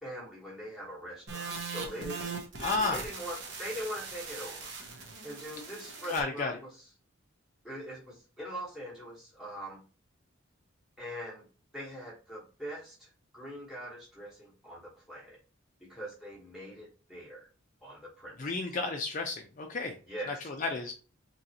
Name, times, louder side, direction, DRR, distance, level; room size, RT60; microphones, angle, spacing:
voice 1, 0.0-2.3 2.9-6.7 7.6-9.8 11.0-11.5 11.7-13.1 13.3-15.4 15.8-17.5 17.8-18.4 20.1-20.3, equal, ahead, -5 dB, 1.1 m, -42 dB
sound 1, 1.3-6.2, right 4 dB, 60° right, 0.9 m, -40 dB
voice 2, 2.6-3.0 6.0-6.5 18.4-20.0 20.3-20.9, left 3 dB, 40° left, 1 dB, 0.4 m, -32 dB
3.9 x 3.0 x 2.8 m, 0.36 s
head